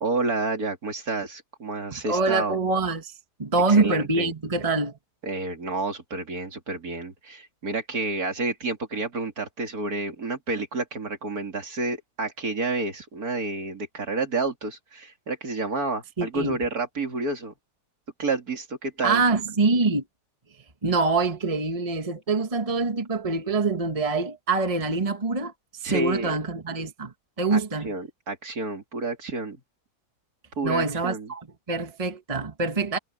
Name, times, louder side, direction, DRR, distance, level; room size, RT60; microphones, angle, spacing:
voice 1, 0.0-2.6 3.7-4.3 5.2-17.5 18.2-19.2 25.8-26.4 27.5-29.6 30.6-31.3, right 3 dB, 65° right, 3.3 m, -30 dB
voice 2, 1.9-4.9 16.2-16.6 19.0-20.0 20.8-25.5 25.8-27.9 30.6-33.0, right 3 dB, 20° right, 1.6 m, -25 dB
omnidirectional pair, 1.7 m